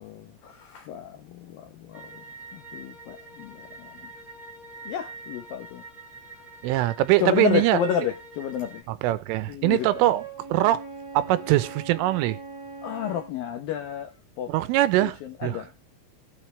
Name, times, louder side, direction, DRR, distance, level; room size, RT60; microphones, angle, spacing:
voice 1, 0.0-2.3 2.5-4.1 4.9-5.8 7.2-8.9 9.5-10.0 12.8-14.5 15.0-15.7, left 9 dB, 80° left, 2.0 m, -31 dB
sound 1, 1.9-8.8, right 3 dB, 25° right, 1.0 m, -45 dB
voice 2, 6.6-7.8 8.9-10.2 10.5-10.8 11.1-12.4 14.5-15.6, right 16 dB, 90° right, 3.4 m, -22 dB
Wind instrument woodwind instrument, 9.8-13.3, right 4 dB, 5° right, 5.8 m, -40 dB
17.5 x 9.4 x 3.3 m
omnidirectional pair, 5.6 m